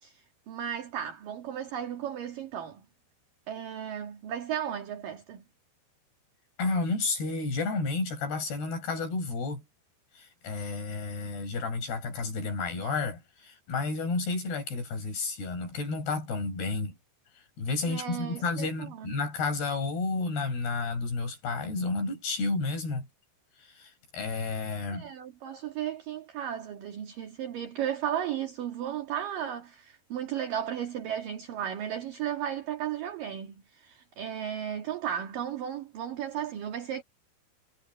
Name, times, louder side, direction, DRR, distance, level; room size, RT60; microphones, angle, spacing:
voice 1, 0.0-2.8 3.5-5.4 17.9-18.7 19.0-19.1 24.9-37.0, right 9 dB, 55° right, 3.2 m, -35 dB
voice 2, 6.6-9.6 10.1-17.0 17.4-23.1 23.6-25.1, left 3 dB, 55° left, 8.6 m, -31 dB
omnidirectional pair, 5.5 m